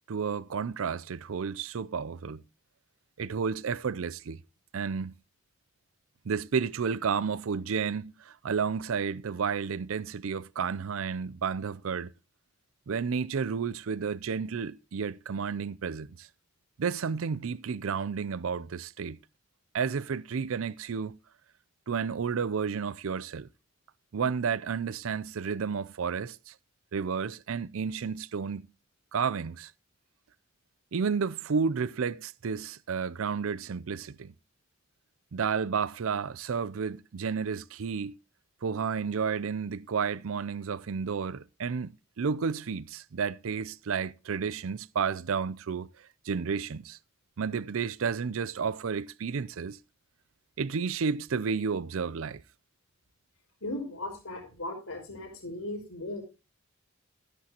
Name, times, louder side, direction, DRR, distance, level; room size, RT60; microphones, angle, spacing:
voice 1, 0.1-2.4 3.2-4.4 4.7-5.1 6.3-12.1 12.9-16.3 16.8-19.2 19.7-21.2 21.9-23.5 24.1-26.5 26.9-28.7 29.1-29.7 30.9-34.3 35.3-38.2 38.6-45.9 46.3-47.0 47.4-49.8 50.6-52.4, right 6 dB, 70° right, 0.5 m, -31 dB
voice 2, 53.6-56.2, left 1 dB, 80° left, 5.0 m, -37 dB
13.0 x 10.0 x 2.9 m
head